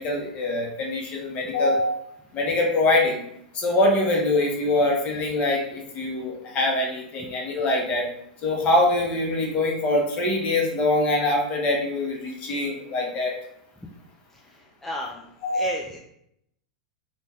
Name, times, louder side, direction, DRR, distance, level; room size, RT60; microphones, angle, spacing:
voice 1, 0.0-2.0 2.3-3.2 3.5-8.0 8.4-13.3 15.4-15.7, left 2 dB, 35° left, 0 dB, 0.8 m, -23 dB
voice 2, 14.4-15.3 15.5-16.0, left 1 dB, 5° left, -2 dB, 0.4 m, -33 dB
2.5 x 2.2 x 3.3 m, 0.72 s
hypercardioid pair, 100°, 4 cm